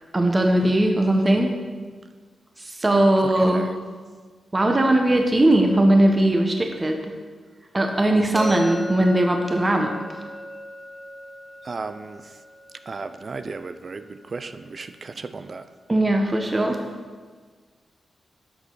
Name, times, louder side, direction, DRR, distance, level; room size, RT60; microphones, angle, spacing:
voice 1, 0.1-1.5 2.7-3.7 4.5-7.1 7.7-10.2 15.9-16.8, right 1 dB, 25° right, 3 dB, 1.0 m, -19 dB
voice 2, 3.2-3.8 11.6-12.3 12.9-15.6, right 4 dB, 50° right, 11 dB, 0.5 m, -35 dB
sound 1, 8.3-14.2, equal, 10° right, 2.0 m, -37 dB
10.5 x 6.3 x 4.0 m, 1.5 s
cardioid pair, 60°, 0 cm